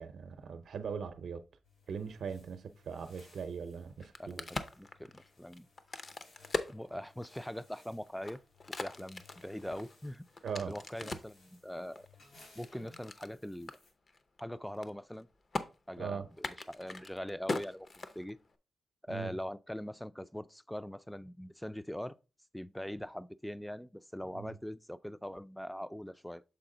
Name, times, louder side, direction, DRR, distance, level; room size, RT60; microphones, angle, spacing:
voice 1, 0.0-1.4 1.9-4.5 10.4-11.1 16.0-16.3 19.1-19.3 24.3-24.5, right 6 dB, 75° right, 0.6 m, -40 dB
sound 1, 1.6-13.9, left 3 dB, 75° left, 2.9 m, -63 dB
Crack, 3.9-7.6 8.1-11.4 12.0-13.3 13.7-13.8 14.1-14.4 14.7-15.2 15.5-15.7 16.3-18.6, left 3 dB, 45° left, 0.6 m, -40 dB
voice 2, 4.2-5.7 6.7-8.4 8.8-10.2 10.6-12.1 12.6-13.7 14.4-15.3 15.9-18.4 19.0-22.2 22.5-26.4, equal, 5° left, 0.3 m, -42 dB
6.9 x 4.1 x 3.8 m
cardioid pair, 80°, 0 cm